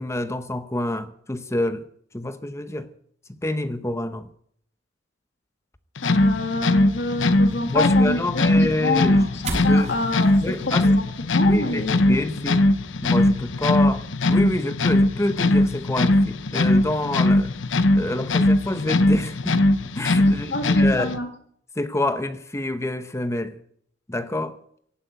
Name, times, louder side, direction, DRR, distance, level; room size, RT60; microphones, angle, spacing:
voice 1, 0.0-1.8 2.1-2.9 3.4-4.3 7.7-9.2 9.5-10.0 10.4-10.9 11.4-12.7 13.0-17.5 17.9-19.6 19.9-21.2 21.8-23.6 24.1-24.6, left 1 dB, 15° left, 0.8 m, -27 dB
sound 1, 6.0-21.2, left 1 dB, 85° left, 0.9 m, -20 dB
voice 2, 6.0-9.3 9.6-10.3 10.8-11.0 11.3-12.0 20.5-21.3, left 2 dB, 65° left, 2.1 m, -26 dB
sound 2, 7.3-14.1, right 2 dB, 35° right, 6.8 m, -40 dB
16.0 x 8.4 x 9.3 m
head